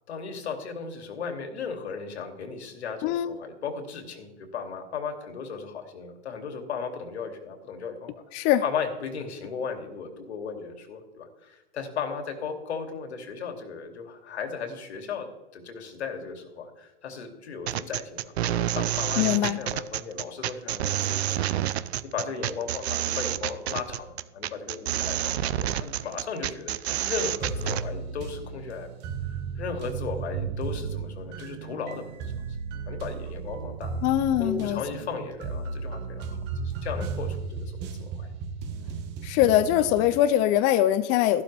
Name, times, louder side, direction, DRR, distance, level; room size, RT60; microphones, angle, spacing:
voice 1, 0.1-8.1 8.6-19.3 19.6-21.5 22.0-28.9 29.2-32.4 32.9-34.0 34.4-38.3, left 5 dB, 80° left, 5 dB, 2.7 m, -36 dB
voice 2, 3.0-3.4 8.3-8.6 19.2-19.6 34.0-34.8 39.2-41.4, left 12 dB, 25° left, 12 dB, 0.4 m, -22 dB
sound 1, 17.7-27.8, right 12 dB, 70° right, 0.7 m, -29 dB
sound 2, 27.4-40.2, right 5 dB, 35° right, 1.4 m, -35 dB
14.0 x 12.0 x 3.4 m, 1.0 s
hypercardioid pair, 135°, 33 cm